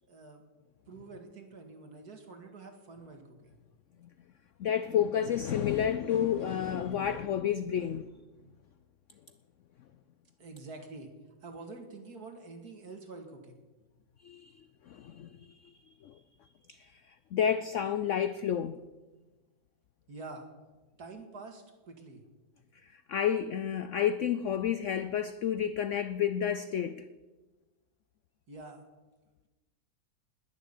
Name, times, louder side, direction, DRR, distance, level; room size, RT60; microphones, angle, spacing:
voice 1, 0.1-0.4 0.9-3.6 10.4-11.1 11.4-13.6 20.1-20.4 21.0-22.2 28.5-28.8, right 3 dB, 60° right, 2.4 m, -47 dB
voice 2, 4.6-8.1 14.2-14.5 14.9-15.4 16.0-16.1 16.7-17.0 17.3-18.8 22.9-27.1, left 9 dB, 75° left, 0.7 m, -30 dB
20.5 x 7.1 x 8.3 m
omnidirectional pair, 1.9 m